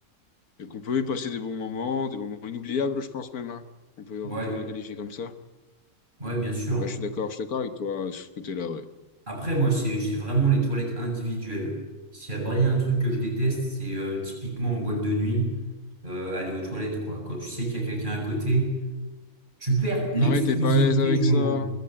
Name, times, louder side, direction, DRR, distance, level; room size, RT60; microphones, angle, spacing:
voice 1, 0.6-3.6 4.0-5.3 6.7-8.9 20.2-21.7, left 5 dB, 85° left, 10 dB, 1.8 m, -30 dB
voice 2, 4.2-4.6 6.2-6.9 9.3-11.8 12.1-15.6 16.0-18.7 19.6-21.6, right 2 dB, 35° right, 0 dB, 7.4 m, -26 dB
20.5 x 15.5 x 8.9 m, 1.2 s
omnidirectional pair, 1.5 m